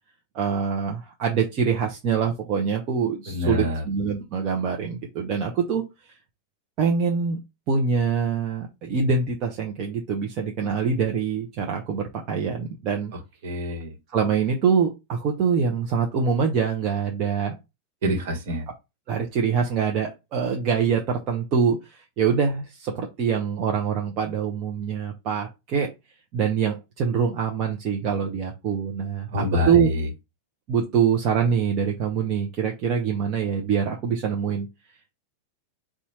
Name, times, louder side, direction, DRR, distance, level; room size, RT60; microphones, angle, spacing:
voice 1, 0.3-5.8 6.8-7.4 7.7-13.1 14.1-17.5 19.1-25.9 26.3-29.9 30.7-34.7, right 6 dB, 40° right, 1 dB, 0.8 m, -24 dB
voice 2, 3.3-3.8 13.4-13.9 18.0-18.6 29.3-30.0, left 1 dB, 55° right, 4 dB, 1.4 m, -26 dB
4.3 x 2.4 x 4.2 m, 0.24 s
figure-of-eight pair, 90°, 0 cm